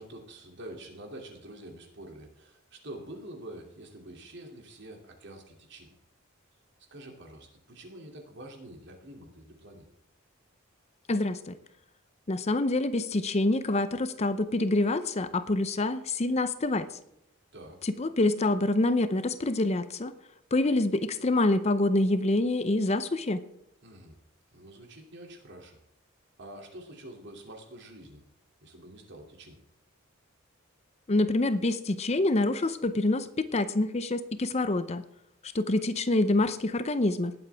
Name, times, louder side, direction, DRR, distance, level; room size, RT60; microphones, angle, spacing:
voice 1, 0.0-6.0 6.9-9.9 17.5-17.8 23.8-24.2 24.5-25.8 26.4-28.3 28.6-29.6, right 1 dB, 60° right, 2 dB, 2.8 m, -46 dB
voice 2, 11.1-11.5 12.3-16.9 17.8-20.1 20.5-23.4 31.1-35.0 35.5-37.3, left 2 dB, 30° left, 13 dB, 0.6 m, -26 dB
19.5 x 7.9 x 3.5 m, 0.83 s
head